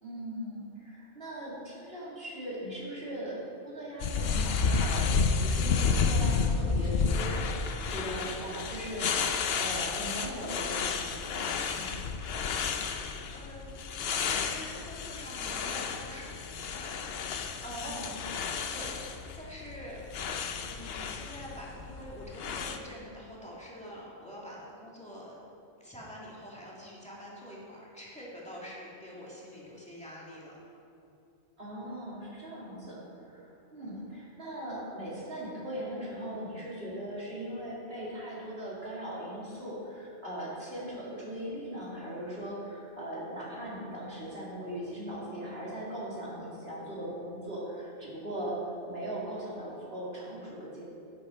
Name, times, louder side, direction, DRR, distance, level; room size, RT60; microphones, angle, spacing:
voice 1, 0.0-3.4 3.6-9.1 9.6-12.0 17.8-18.1 31.6-48.6 48.8-50.8, right 1 dB, 55° right, -6 dB, 2.7 m, -39 dB
sound 1, 4.0-22.8, left 5 dB, 60° left, 0.8 m, -31 dB
voice 2, 13.1-13.7 14.0-20.0 20.4-25.4 25.8-30.6 33.8-34.0, equal, 5° left, -6 dB, 2.2 m, -46 dB
10.5 x 9.3 x 4.3 m, 2.7 s
omnidirectional pair, 1.3 m